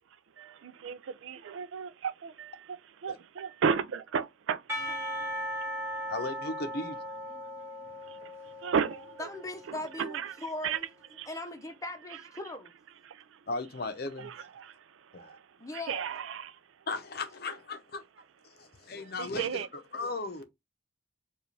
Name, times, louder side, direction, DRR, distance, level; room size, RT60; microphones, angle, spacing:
voice 1, 0.4-2.8 3.0-5.4 5.9-6.0 8.1-8.3 8.6-9.3 9.7-10.3 10.6-10.8 11.2-11.3 13.1-13.4 14.2-14.8 15.1-15.4 15.7-16.6 19.0-19.7, right 6 dB, 85° right, 0.4 m, -34 dB
Percussion / Church bell, 4.7-9.9, equal, 15° right, 1.2 m, -38 dB
voice 2, 6.1-7.0 13.5-14.3 15.1-15.4 16.9-18.0 18.4-20.5, left 3 dB, 50° left, 0.7 m, -36 dB
voice 3, 9.2-10.9 11.3-12.7 15.6-16.1, left 2 dB, 15° left, 0.7 m, -39 dB
4.8 x 2.4 x 3.3 m
head